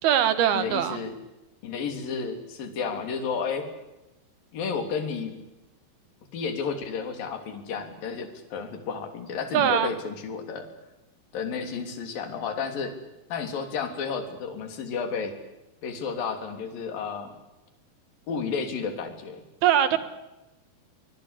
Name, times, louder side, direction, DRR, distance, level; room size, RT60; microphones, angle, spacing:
voice 1, 0.0-1.0 9.5-9.9 19.6-20.0, right 10 dB, 65° right, 12 dB, 3.2 m, -22 dB
voice 2, 0.5-1.2 1.6-3.7 4.5-5.4 6.3-10.6 11.3-12.9 13.3-15.3 15.8-17.3 18.3-19.4, left 5 dB, 55° left, 7 dB, 4.7 m, -32 dB
24.5 x 21.5 x 8.3 m, 0.99 s
omnidirectional pair, 5.2 m